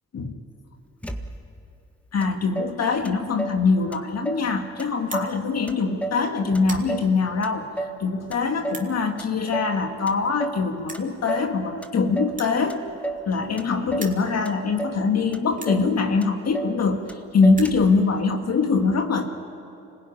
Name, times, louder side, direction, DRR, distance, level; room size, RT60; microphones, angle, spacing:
Motor vehicle (road), 1.0-1.7 2.2-2.3 2.6-3.6 3.9-4.5 4.8-5.4 5.7-7.1 7.4-8.0 8.3-8.9 9.2-9.8 10.1-10.7 10.9-11.5 11.8-12.4 12.7-13.3 13.6-14.2 14.5-15.0 15.3-15.4 15.7-15.9 16.2-16.8 17.1-17.2 17.4-18.0, right 2 dB, 5° left, 1.8 m, -32 dB
voice 1, 2.1-7.7 8.0-12.8 13.3-19.3, left 4 dB, 55° left, 5 dB, 2.0 m, -23 dB
sound 1, 5.0-5.3 6.0-6.2 6.5-6.9 7.6-7.7 8.6-8.9 10.0-10.1 10.3-10.4 10.8-11.1 12.3-13.6 13.9-14.2 14.9-15.0 15.5-15.8 16.7-16.8 17.0-17.1 17.4-17.8, right 3 dB, 25° right, 3.1 m, -39 dB
25.5 x 16.5 x 9.8 m, 2.8 s
supercardioid pair, 60°, 31 cm